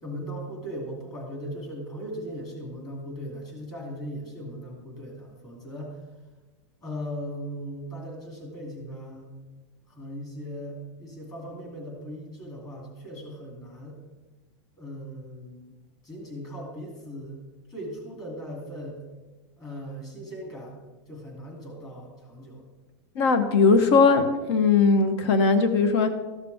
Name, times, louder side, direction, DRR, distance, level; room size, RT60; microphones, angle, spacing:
voice 1, 0.0-6.0 6.8-9.4 9.9-14.0 14.8-15.8 16.0-17.4 17.7-19.0 19.6-20.8 21.1-22.6, equal, 20° left, -1 dB, 2.7 m, -38 dB
voice 2, 23.2-26.1, left 4 dB, 60° left, 9 dB, 1.0 m, -19 dB
13.5 x 6.7 x 3.5 m, 1.2 s
supercardioid pair, 155°, 15 cm